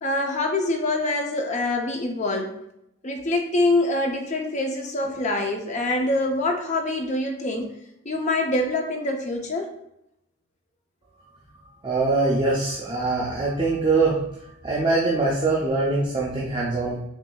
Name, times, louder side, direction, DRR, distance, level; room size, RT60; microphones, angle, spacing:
voice 1, 0.0-2.6 3.0-7.7 8.0-9.7, left 2 dB, 35° left, 3 dB, 0.5 m, -25 dB
voice 2, 11.8-14.2 14.6-17.0, right 3 dB, 20° right, -5 dB, 0.5 m, -23 dB
6.1 x 2.6 x 2.3 m, 0.81 s
head